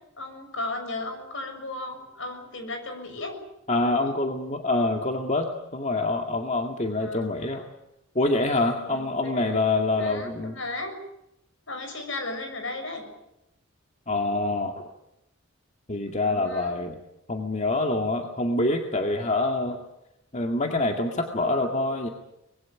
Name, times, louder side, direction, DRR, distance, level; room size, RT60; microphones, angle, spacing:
voice 1, 0.2-3.4 6.9-7.3 8.9-9.6 10.0-10.9 11.7-13.1 16.1-16.8, left 2 dB, 65° left, 6 dB, 6.7 m, -35 dB
voice 2, 3.7-7.7 8.1-10.6 14.1-14.9 15.9-17.0 17.3-19.8 20.3-22.1, left 2 dB, 35° left, 3 dB, 2.1 m, -26 dB
25.0 x 21.0 x 8.8 m, 0.85 s
head